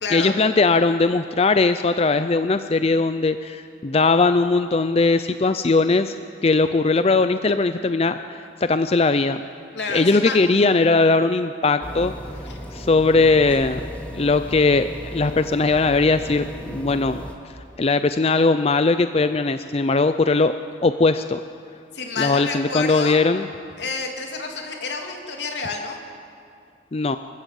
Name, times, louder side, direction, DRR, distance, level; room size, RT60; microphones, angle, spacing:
voice 1, 0.1-6.1 6.4-9.4 9.9-12.1 12.7-13.8 14.1-17.2 17.8-20.5 20.8-21.4 22.2-23.5 26.9-27.2, left 3 dB, 35° left, 10 dB, 0.5 m, -19 dB
voice 2, 9.7-10.4 12.4-12.6 21.9-23.2 23.8-26.0, left 4 dB, 80° left, 2 dB, 3.0 m, -29 dB
sound 1, 11.8-17.3, equal, 10° left, 2.1 m, -35 dB
25.5 x 15.0 x 7.6 m, 2.4 s
head